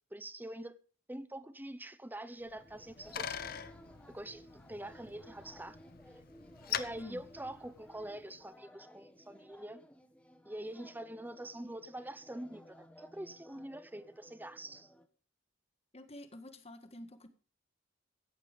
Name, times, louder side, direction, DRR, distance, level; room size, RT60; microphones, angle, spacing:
voice 1, 0.1-0.7 1.1-3.5 4.1-5.8 6.7-9.8 10.4-14.9, right 1 dB, 10° right, 0.8 m, -45 dB
Bicycle, 2.5-8.2, left 8 dB, 50° left, 0.9 m, -44 dB
sound 1, 2.6-15.1, equal, 5° left, 1.1 m, -58 dB
voice 2, 15.9-17.3, left 1 dB, 30° left, 1.6 m, -48 dB
15.0 x 8.9 x 5.1 m
head